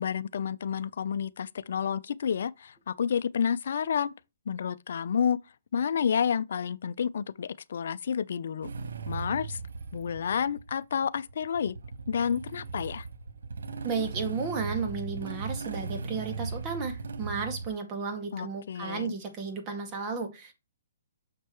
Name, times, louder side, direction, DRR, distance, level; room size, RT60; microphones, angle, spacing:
voice 1, 0.0-4.1 4.5-5.4 5.7-8.7 9.1-9.6 9.9-11.7 12.1-13.1 18.3-19.1, left 7 dB, 65° left, 0.5 m, -30 dB
Motorcycle / Engine starting, 8.6-17.7, right 4 dB, 80° right, 1.0 m, -38 dB
voice 2, 13.8-20.5, right 5 dB, 25° right, 2.0 m, -33 dB
6.7 x 6.6 x 3.1 m
hypercardioid pair, 155°, 0 cm